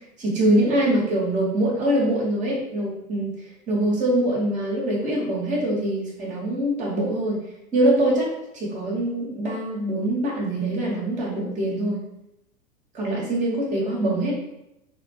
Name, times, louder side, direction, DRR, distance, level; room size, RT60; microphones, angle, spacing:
voice 1, 0.2-3.3 3.7-7.4 7.7-12.1 12.9-14.3, right 1 dB, 15° right, -5 dB, 1.2 m, -23 dB
3.7 x 2.2 x 4.2 m, 0.88 s
hypercardioid pair, 135°, 43 cm